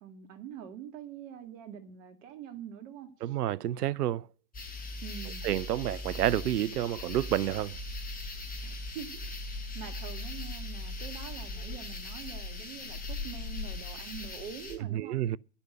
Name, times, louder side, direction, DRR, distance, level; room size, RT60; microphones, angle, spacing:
voice 1, 0.0-3.4 5.0-5.4 8.6-15.2, right 9 dB, 50° right, 2.2 m, -45 dB
voice 2, 3.2-4.2 5.4-7.7 14.9-15.4, right 13 dB, 75° right, 0.5 m, -29 dB
sound 1, 4.5-14.8, left 2 dB, 20° left, 6.1 m, -39 dB
11.0 x 7.1 x 8.8 m
figure-of-eight pair, 95°, 47 cm